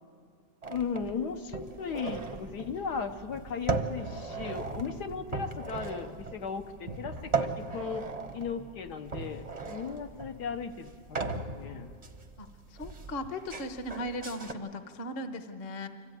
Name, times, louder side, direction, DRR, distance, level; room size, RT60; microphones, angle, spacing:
press cutter, 0.6-14.5, right 4 dB, 30° right, 0.8 m, -37 dB
voice 1, 0.7-8.1 8.3-11.9, left 6 dB, 65° left, 5 dB, 1.4 m, -36 dB
voice 2, 12.4-15.9, left 1 dB, 40° left, 8 dB, 1.1 m, -38 dB
25.5 x 14.5 x 9.2 m, 2.2 s
omnidirectional pair, 1.9 m